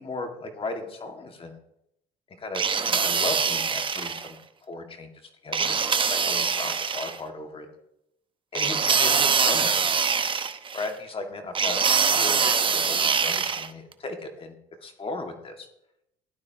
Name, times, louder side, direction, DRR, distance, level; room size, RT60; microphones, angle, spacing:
voice 1, 0.0-1.6 2.4-4.4 4.7-5.1 5.4-5.8 6.1-7.7 8.5-10.0 10.7-14.6 14.8-15.7, left 3 dB, 35° left, 4 dB, 2.0 m, -36 dB
sound 1, 2.5-4.3 5.5-7.2 8.5-10.9 11.5-13.7, right 6 dB, 30° right, 0.9 m, -24 dB
16.0 x 11.5 x 2.9 m, 0.80 s
supercardioid pair, 90°, 17 cm